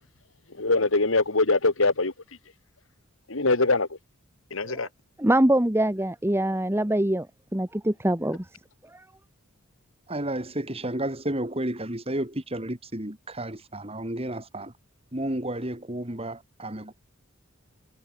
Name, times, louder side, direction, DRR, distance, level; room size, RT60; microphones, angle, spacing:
voice 1, 0.6-2.1 3.3-3.9 4.5-4.9, left 3 dB, 70° left, 2.1 m, -22 dB
voice 2, 5.2-7.3 7.5-8.4 8.9-9.0, right 1 dB, 10° right, 1.3 m, -24 dB
voice 3, 10.1-14.7 15.1-16.9, right 1 dB, 30° right, 3.5 m, -32 dB
head